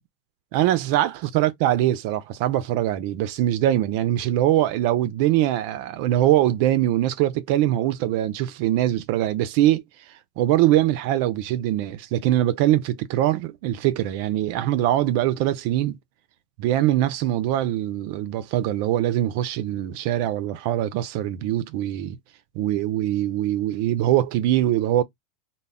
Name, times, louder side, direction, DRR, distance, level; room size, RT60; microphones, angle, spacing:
voice 1, 0.5-16.0 16.6-22.2 22.6-25.0, right 13 dB, 60° right, 0.3 m, -22 dB
2.0 x 2.0 x 3.5 m
supercardioid pair, 130°, 0 cm